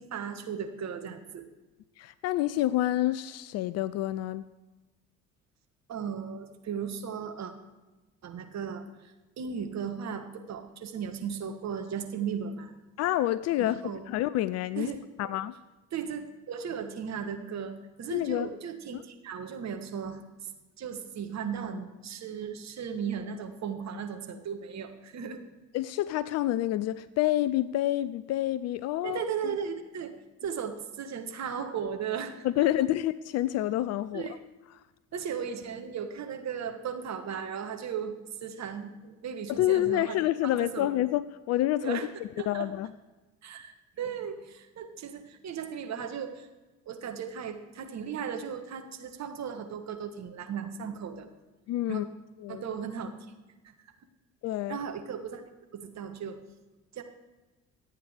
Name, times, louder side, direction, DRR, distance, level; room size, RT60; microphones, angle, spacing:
voice 1, 0.0-1.4 5.9-7.5 8.2-12.7 13.6-14.0 14.8-15.3 15.9-20.5 20.8-25.4 29.0-30.2 30.4-32.7 34.1-34.4 35.1-38.1 38.4-40.2 40.4-40.9 41.8-42.1 42.4-42.7 43.4-46.5 46.8-51.3 51.9-52.0 52.5-53.1 53.6-53.7 54.7-55.4 55.7-56.4 56.9-57.0, right 7 dB, 40° right, 5 dB, 1.5 m, -36 dB
voice 2, 2.0-4.5 13.0-14.9 15.2-15.5 18.1-18.5 25.7-29.2 32.4-34.4 39.5-42.0 42.5-42.9 51.7-52.1 52.4-52.6 54.4-54.8, left 14 dB, 40° left, 17 dB, 0.4 m, -28 dB
25.5 x 8.6 x 3.4 m, 1.2 s
figure-of-eight pair, 50°, 41 cm